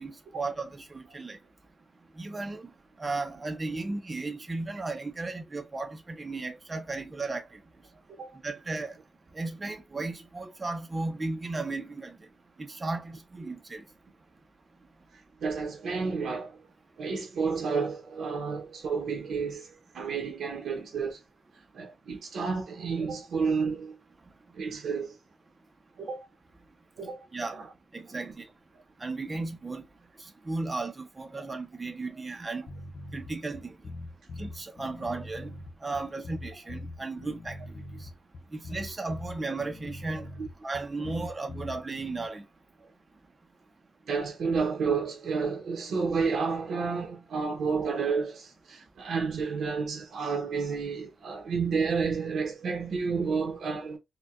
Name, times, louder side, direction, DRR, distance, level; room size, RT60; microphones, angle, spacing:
voice 1, 0.0-1.4 2.2-2.7 3.0-7.6 8.4-8.9 9.3-12.2 12.6-13.8 27.3-27.6 27.9-28.5 29.0-29.8 30.5-32.7 33.1-33.7 34.4-35.5 35.8-37.6 38.0-38.1 38.5-40.3 40.6-42.4, right 3 dB, 20° right, 0.5 m, -35 dB
voice 2, 15.1-16.7 17.0-21.2 21.7-24.0 24.5-25.2 26.0-26.3 27.0-27.7 31.4-31.5 35.0-35.1 38.7-38.8 40.4-40.5 42.8-42.9 44.1-54.0, right 5 dB, 75° right, 0.7 m, -31 dB
sound 1, 32.7-42.3, left 2 dB, 50° left, 0.5 m, -42 dB
4.2 x 2.1 x 2.3 m
wide cardioid pair, 170°, 0 cm